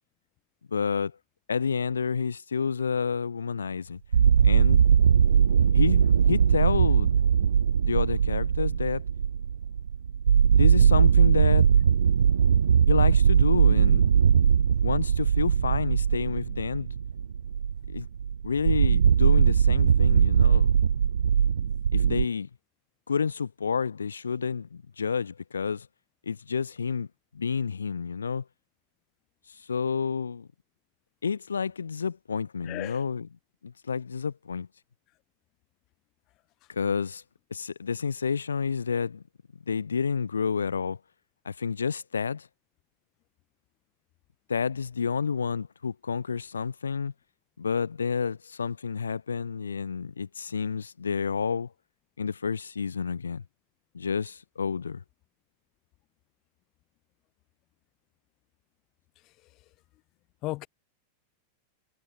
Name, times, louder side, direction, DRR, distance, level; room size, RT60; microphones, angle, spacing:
voice 1, 0.7-1.1 1.5-4.0 4.4-4.8 5.7-7.1 7.8-9.0 10.5-11.7 12.9-14.1 14.8-16.9 17.9-18.1 18.4-20.7 21.9-22.5 23.1-25.9 26.3-27.1 27.3-28.4 29.7-30.5 31.2-33.3 33.6-34.7 36.7-37.2 37.5-39.2 39.7-41.0 41.4-42.5 44.5-47.1 47.6-51.7 52.2-53.4 53.9-55.0, left 6 dB, 70° left, 4.8 m, -29 dB
sound 1, 4.1-22.3, right 7 dB, 70° right, 1.2 m, -21 dB
voice 2, 32.6-33.0 60.4-60.7, left 19 dB, 40° left, 4.9 m, -34 dB
figure-of-eight pair, 90°, 0 cm